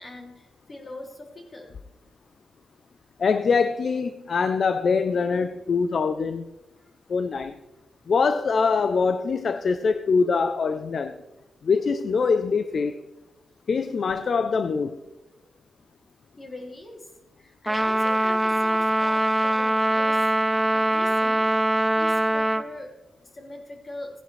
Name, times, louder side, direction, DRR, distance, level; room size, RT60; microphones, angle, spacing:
voice 1, 0.0-1.8 6.8-6.9 15.4-15.5 16.4-17.1 17.4-20.3 20.7-24.2, left 1 dB, 30° left, 2.6 m, -42 dB
voice 2, 3.2-6.4 7.1-7.6 8.1-11.2 11.6-13.0 13.7-14.9, left 5 dB, 50° left, 0.5 m, -23 dB
Trumpet, 17.7-22.7, right 1 dB, 10° right, 0.4 m, -22 dB
16.5 x 10.5 x 3.2 m
wide cardioid pair, 135°, 0 cm